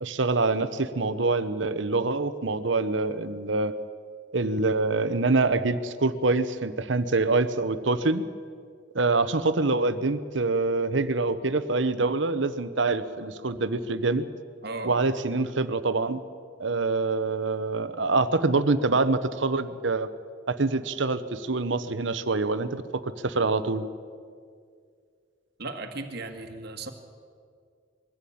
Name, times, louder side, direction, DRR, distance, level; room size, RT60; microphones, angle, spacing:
voice 1, 0.0-3.7 4.3-8.2 8.9-14.2 14.8-16.2 16.6-20.1 20.5-23.9, right 3 dB, 75° right, 12 dB, 1.0 m, -25 dB
voice 2, 14.6-15.0 25.6-26.9, right 3 dB, 60° right, 6 dB, 1.7 m, -36 dB
22.0 x 14.5 x 8.6 m, 2.1 s
head